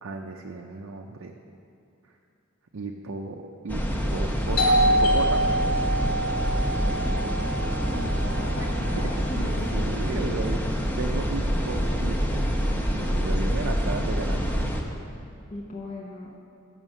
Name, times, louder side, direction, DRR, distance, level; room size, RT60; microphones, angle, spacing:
voice 1, 0.0-1.3 2.7-3.8 4.1-5.5 9.0-10.6 11.0-12.5 12.7-14.5, right 3 dB, 65° right, 1 dB, 0.5 m, -34 dB
sound 1, 3.7-14.8, equal, 10° left, 0.7 m, -26 dB
Doorbell, 4.6-10.0, right 1 dB, 75° left, 2.3 m, -26 dB
voice 2, 7.6-9.7 15.5-16.3, left 1 dB, 40° left, -3 dB, 0.8 m, -38 dB
9.0 x 6.4 x 6.2 m, 2.5 s
head